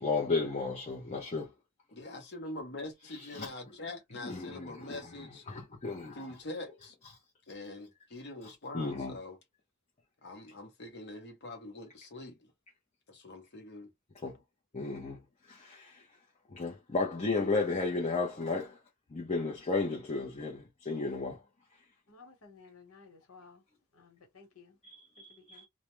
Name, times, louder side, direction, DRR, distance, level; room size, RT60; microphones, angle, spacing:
voice 1, 0.0-1.5 3.1-3.5 4.2-6.3 8.7-9.2 14.2-14.4 14.7-15.2 15.5-16.0 16.5-18.8 19.1-21.4 24.8-25.7, left 3 dB, 30° left, 0.6 m, -34 dB
voice 2, 1.9-5.4 5.7-5.8 6.1-6.9 7.5-9.4 10.2-12.3 13.1-13.9, left 2 dB, 55° left, 1.0 m, -44 dB
voice 3, 22.1-23.6 23.9-24.8 25.2-25.7, left 4 dB, 80° left, 1.2 m, -56 dB
2.3 x 2.1 x 3.0 m
head